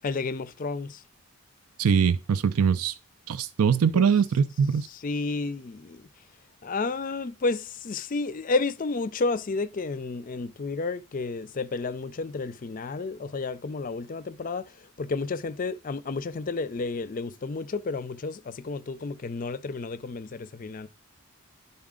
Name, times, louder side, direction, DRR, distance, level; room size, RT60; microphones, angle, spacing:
voice 1, 0.0-1.0 3.9-4.1 4.9-6.1 6.6-20.9, left 3 dB, 40° left, 0.4 m, -31 dB
voice 2, 1.8-2.9 3.3-4.9, right 6 dB, 75° right, 0.4 m, -22 dB
11.5 x 4.0 x 3.7 m
head